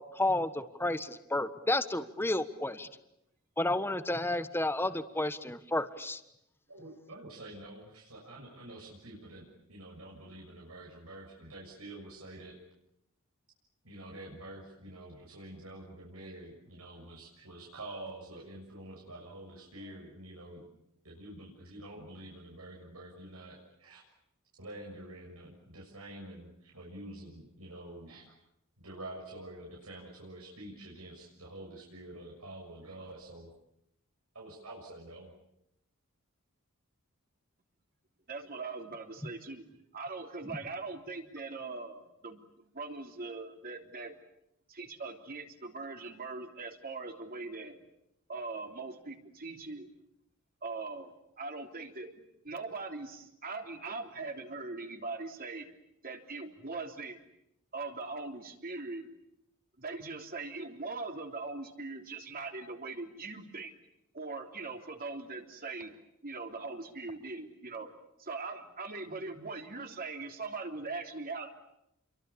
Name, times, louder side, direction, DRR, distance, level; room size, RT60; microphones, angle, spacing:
voice 1, 0.0-2.9 3.6-6.2 40.4-40.6, left 2 dB, 10° left, 11 dB, 1.4 m, -31 dB
voice 2, 6.7-12.5 13.8-20.7 21.0-24.0 24.6-28.3 28.8-33.5 34.3-35.3, right 1 dB, 85° right, -2 dB, 6.8 m, -47 dB
voice 3, 38.3-39.7 39.9-44.1 44.7-47.9 48.3-50.0 50.6-55.7 56.0-57.2 57.7-59.1 59.8-63.7 64.1-66.0 66.2-67.9 68.2-71.5, right 3 dB, 45° right, 4 dB, 3.4 m, -41 dB
29.5 x 23.5 x 8.6 m, 0.83 s
head